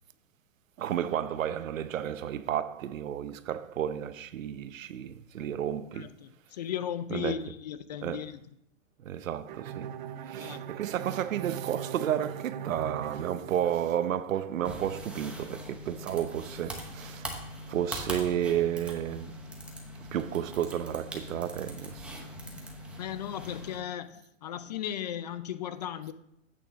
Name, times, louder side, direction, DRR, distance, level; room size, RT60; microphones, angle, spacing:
voice 1, 0.8-6.1 7.1-7.4 8.0-8.2 9.0-9.9 10.2-17.4 17.7-19.3 20.1-22.2, right 10 dB, 90° right, 0.8 m, -32 dB
voice 2, 5.9-8.4 10.4-10.6 23.0-26.1, left 10 dB, 35° left, 0.4 m, -36 dB
Bowed string instrument, 9.5-14.3, right 8 dB, 40° right, 0.6 m, -40 dB
sound 1, 14.6-23.8, equal, 5° right, 0.8 m, -42 dB
8.5 x 6.9 x 6.3 m
hypercardioid pair, 155°, 38 cm